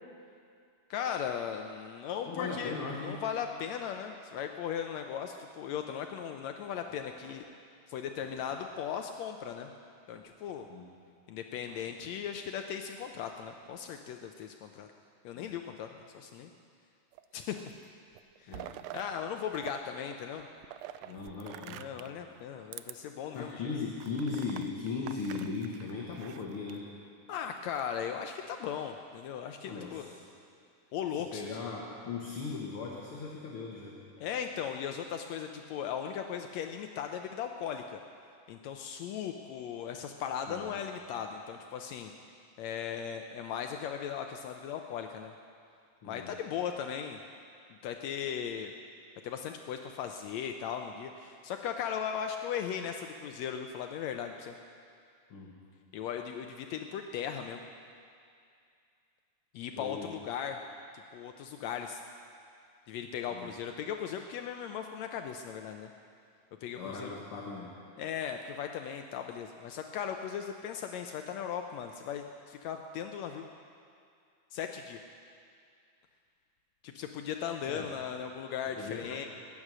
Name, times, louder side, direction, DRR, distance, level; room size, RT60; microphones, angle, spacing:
voice 1, 0.9-7.4 7.9-9.7 10.1-10.7 11.3-14.9 15.2-16.5 17.3-17.6 18.4-18.6 18.9-20.4 21.7-23.8 27.3-30.1 30.9-31.6 34.2-38.0 38.5-42.1 42.6-45.3 46.0-47.2 47.8-48.7 49.2-54.6 55.9-57.7 59.5-60.6 61.1-62.0 62.9-65.9 66.6-67.2 68.0-73.5 74.5-75.0 76.8-79.3, left 8 dB, 75° left, 5 dB, 1.8 m, -37 dB
voice 2, 2.3-3.2 10.7-10.9 15.3-15.5 18.5-18.8 21.0-21.9 23.3-26.9 29.6-30.1 31.3-34.0 40.5-40.7 46.0-46.3 55.3-55.5 59.8-60.1 63.3-63.5 66.7-67.8 77.7-77.9 78.8-79.3, left 4 dB, 55° left, -2 dB, 2.0 m, -38 dB
sound 1, 6.6-7.4 8.2-8.9 10.1-10.6 11.7-11.9 13.0-13.8, right 2 dB, 60° right, 4.0 m, -58 dB
sound 2, 17.1-17.8 18.1-19.8 20.0-22.2 22.7-22.9 23.4-23.5 24.0-26.8 27.5-28.1, right 13 dB, 80° right, 1.5 m, -46 dB
21.5 x 9.8 x 6.1 m, 2.4 s
omnidirectional pair, 3.4 m